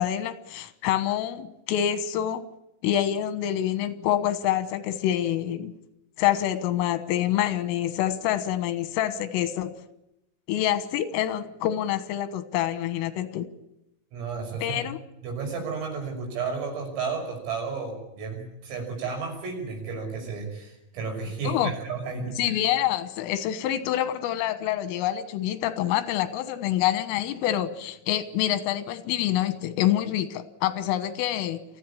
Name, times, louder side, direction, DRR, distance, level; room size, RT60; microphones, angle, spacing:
voice 1, 0.0-2.4 2.8-5.7 6.2-9.7 10.5-13.5 14.6-15.0 21.5-21.7 22.4-31.7, left 12 dB, 90° left, 12 dB, 3.9 m, -26 dB
voice 2, 14.1-14.8 15.2-22.6, right 5 dB, 85° right, 2 dB, 8.6 m, -32 dB
24.0 x 15.0 x 8.7 m, 0.86 s
omnidirectional pair, 5.8 m